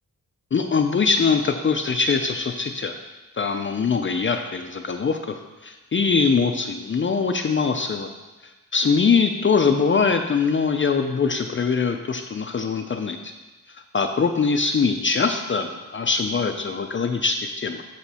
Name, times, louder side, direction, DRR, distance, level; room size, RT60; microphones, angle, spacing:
voice 1, 0.5-3.0 3.4-8.1 8.4-13.3 13.7-17.8, left 5 dB, 35° left, 5 dB, 0.5 m, -22 dB
8.0 x 5.9 x 4.2 m, 1.2 s
wide cardioid pair, 120°, 33 cm